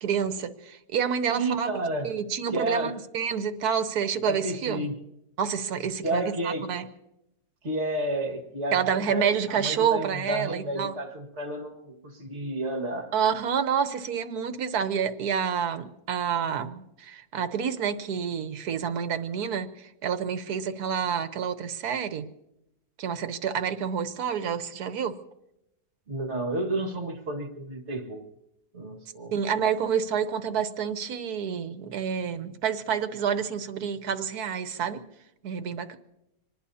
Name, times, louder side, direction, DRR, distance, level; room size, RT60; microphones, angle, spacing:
voice 1, 0.0-1.7 2.0-4.9 5.4-6.9 8.7-10.9 13.1-19.7 20.0-22.3 23.0-25.2 29.3-35.0 35.4-36.0, right 7 dB, 75° right, 10 dB, 1.5 m, -28 dB
voice 2, 1.3-2.1 2.5-3.0 4.3-5.0 6.0-6.7 7.6-13.1 26.1-28.2 28.7-29.3, right 1 dB, 45° right, 3 dB, 2.2 m, -31 dB
25.5 x 20.0 x 2.8 m, 0.86 s
omnidirectional pair, 1.7 m